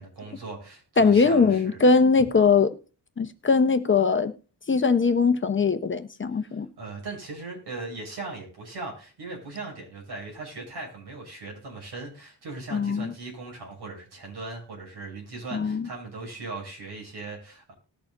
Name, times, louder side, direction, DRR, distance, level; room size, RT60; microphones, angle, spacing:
voice 1, 0.0-1.8 6.4-17.7, right 3 dB, 80° right, 6.8 m, -39 dB
voice 2, 1.0-2.8 3.2-4.3 4.7-6.7 12.7-13.1 15.5-15.9, left 4 dB, 30° left, 0.8 m, -21 dB
20.0 x 6.9 x 2.5 m
wide cardioid pair, 180°, 39 cm